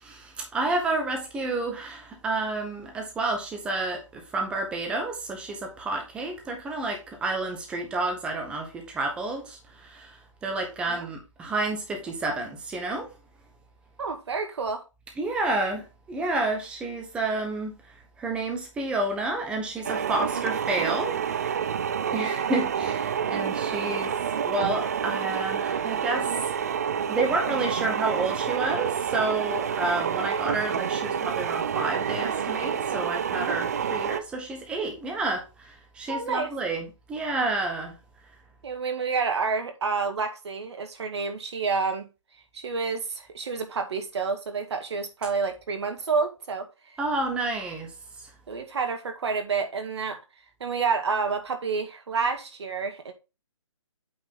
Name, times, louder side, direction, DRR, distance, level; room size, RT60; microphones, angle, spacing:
voice 1, 0.0-13.1 15.2-17.7 18.2-21.6 22.1-26.3 27.1-37.9 47.0-47.9 48.2-48.3, right 2 dB, 5° right, 1.2 m, -30 dB
voice 2, 14.0-14.8 36.1-36.5 38.6-42.1 42.5-46.9 48.5-50.2 50.6-53.1, right 5 dB, 55° right, 2.0 m, -29 dB
sound 1, 19.8-34.2, right 7 dB, 30° right, 0.4 m, -28 dB
8.6 x 4.7 x 3.7 m
hypercardioid pair, 165°, 16 cm